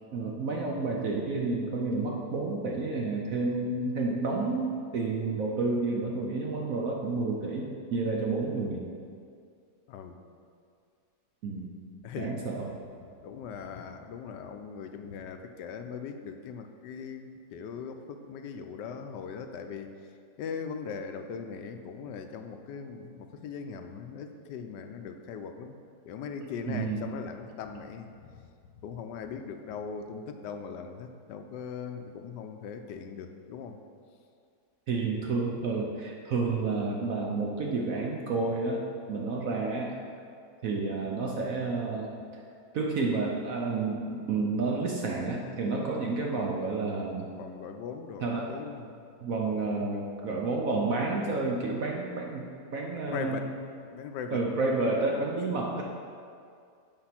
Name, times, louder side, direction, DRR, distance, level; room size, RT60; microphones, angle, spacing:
voice 1, 0.1-8.9 11.4-11.7 12.2-12.7 26.7-27.0 34.9-40.0 40.6-42.1 42.7-47.3 48.2-48.5 49.2-52.4 52.7-53.5 54.3-55.8, right 3 dB, 60° right, 0 dB, 1.1 m, -30 dB
voice 2, 12.0-12.5 13.2-19.9 20.4-25.7 26.0-28.4 28.8-33.8 47.4-49.0 53.1-53.5 53.9-54.4, left 6 dB, 85° left, 6 dB, 1.3 m, -40 dB
8.7 x 4.8 x 5.8 m, 2.3 s
omnidirectional pair, 1.8 m